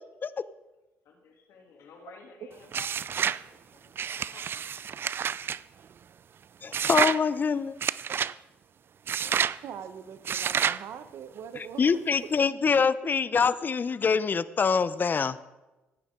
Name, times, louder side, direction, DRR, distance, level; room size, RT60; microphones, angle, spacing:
voice 1, 1.0-4.6, left 5 dB, 70° left, 1 dB, 2.9 m, -53 dB
sound 1, 2.7-3.4 4.0-5.6 6.7-7.2 7.8-8.3 9.1-9.6 10.3-10.8, right 8 dB, 50° right, 0.4 m, -28 dB
voice 2, 6.6-7.7 11.8-15.4, left 5 dB, 40° left, 16 dB, 0.7 m, -25 dB
voice 3, 9.2-12.0, right 8 dB, 65° right, 11 dB, 1.0 m, -42 dB
16.5 x 9.1 x 3.8 m, 1.1 s
hypercardioid pair, 55°, 5 cm